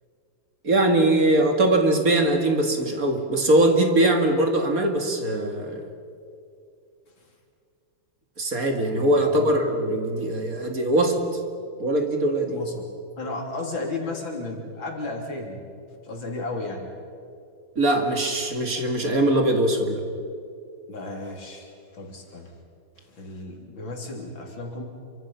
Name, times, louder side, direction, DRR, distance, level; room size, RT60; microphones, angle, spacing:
voice 1, 0.6-5.8 8.4-11.2 11.8-12.6 17.8-20.0, right 1 dB, 45° right, 4 dB, 2.6 m, -21 dB
voice 2, 8.9-9.6 12.5-12.9 13.2-15.6 16.0-16.9 20.9-22.5 23.0-24.8, left 2 dB, 80° left, 1 dB, 4.2 m, -34 dB
28.0 x 24.5 x 5.7 m, 2.4 s
omnidirectional pair, 2.1 m